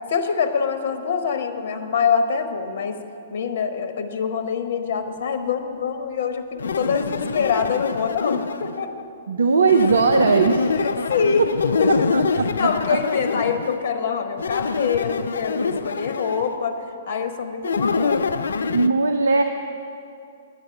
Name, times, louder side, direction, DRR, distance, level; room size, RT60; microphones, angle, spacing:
voice 1, 0.1-3.0 3.3-9.1 10.8-18.4, left 6 dB, 55° left, 8 dB, 1.0 m, -25 dB
sound 1, 6.6-8.8 9.7-13.8 14.4-16.6 17.6-18.9, left 4 dB, 75° left, 0.4 m, -25 dB
voice 2, 9.3-10.7 12.1-12.5 18.7-19.4, right 4 dB, 75° right, 6 dB, 0.5 m, -18 dB
11.0 x 8.7 x 6.7 m, 2.6 s
figure-of-eight pair, 120°, 0 cm